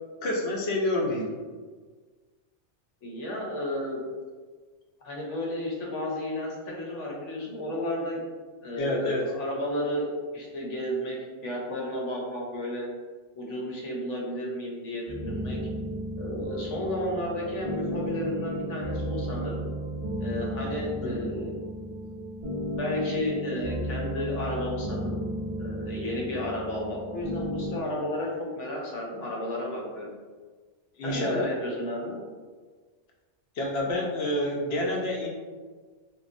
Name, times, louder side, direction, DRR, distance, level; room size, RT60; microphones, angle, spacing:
voice 1, 0.2-1.3 8.8-9.3 21.0-21.4 31.0-31.5 33.6-35.3, left 1 dB, 65° left, -1 dB, 0.7 m, -28 dB
voice 2, 3.0-4.1 5.0-8.2 8.6-10.1 10.3-11.2 11.4-12.9 13.4-15.6 16.2-19.7 20.2-21.6 22.7-25.0 25.6-28.3 28.5-30.1 31.0-32.2, left 1 dB, 90° left, -3 dB, 1.0 m, -32 dB
sound 1, 15.1-27.8, equal, 55° right, 0.7 m, -34 dB
3.0 x 2.3 x 2.5 m, 1.5 s
omnidirectional pair, 1.2 m